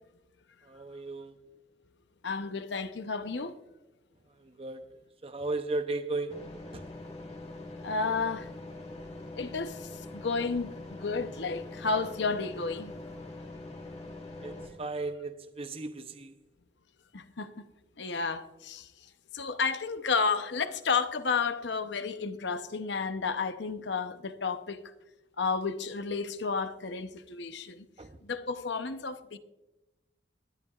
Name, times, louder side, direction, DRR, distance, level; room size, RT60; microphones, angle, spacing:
voice 1, 0.7-1.4 4.4-4.9 5.2-6.5 6.7-6.8 14.4-14.5 14.8-16.3 28.0-28.1, right 2 dB, 30° right, 0.7 m, -35 dB
voice 2, 2.2-3.5 7.8-8.5 9.4-12.9 17.1-17.7 18.0-18.9 19.3-24.8 25.4-27.9 28.2-29.4, left 4 dB, 70° left, 0.8 m, -32 dB
sound 1, 6.3-14.7, left 2 dB, 35° left, 2.0 m, -43 dB
20.5 x 12.0 x 2.4 m
head